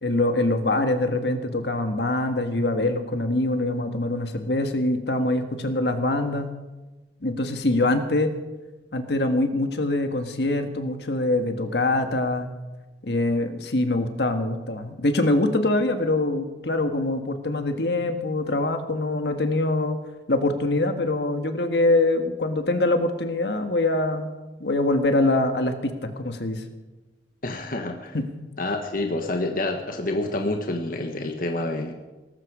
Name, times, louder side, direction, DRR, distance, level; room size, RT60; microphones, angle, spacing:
voice 1, 0.0-6.5 7.2-8.3 8.9-12.5 13.0-20.0 20.3-24.3 24.6-26.6 28.1-28.3, left 2 dB, 70° left, 7 dB, 1.6 m, -24 dB
voice 2, 27.4-28.2 28.6-31.9, left 2 dB, 50° left, 4 dB, 1.3 m, -28 dB
18.5 x 14.5 x 5.0 m, 1.1 s
head